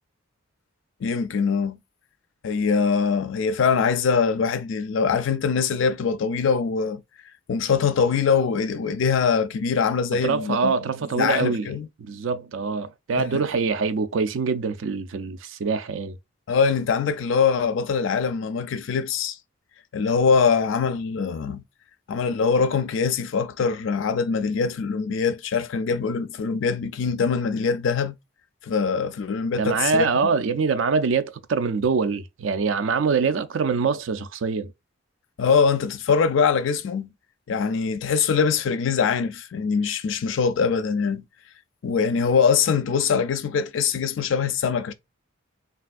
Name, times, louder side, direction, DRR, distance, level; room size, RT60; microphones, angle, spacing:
voice 1, 1.0-1.8 2.4-7.0 7.5-10.8 11.1-11.9 13.2-13.4 16.5-19.4 19.9-21.6 22.1-28.1 28.6-30.3 35.4-37.1 37.5-41.2 41.8-44.9, left 5 dB, 65° left, 0.4 m, -23 dB
voice 2, 10.2-11.7 12.0-16.2 29.6-34.7, right 5 dB, 65° right, 0.4 m, -24 dB
3.3 x 2.4 x 2.4 m
head